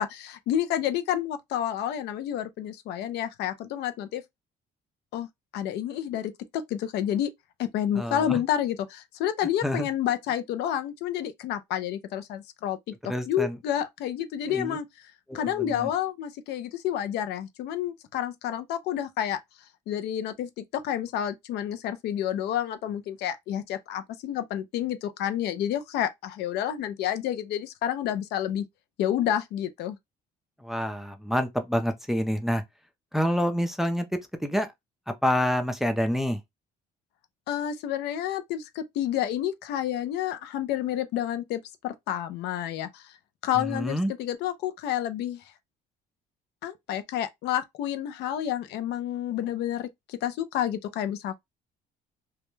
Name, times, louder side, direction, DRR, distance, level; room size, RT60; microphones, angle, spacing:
voice 1, 0.0-4.2 5.1-5.3 5.5-7.3 7.6-12.9 13.3-14.9 15.3-19.4 19.9-28.6 29.0-30.0 37.5-43.2 43.4-45.4 46.6-51.4, left 10 dB, 75° left, 0.5 m, -29 dB
voice 2, 8.0-8.4 9.6-9.9 13.0-13.6 14.5-14.8 15.3-15.9 30.6-32.6 33.1-34.1 34.4-34.7 35.1-36.4 43.6-44.1, equal, ahead, 0.4 m, -27 dB
2.2 x 2.1 x 3.0 m
cardioid pair, 110°, 17 cm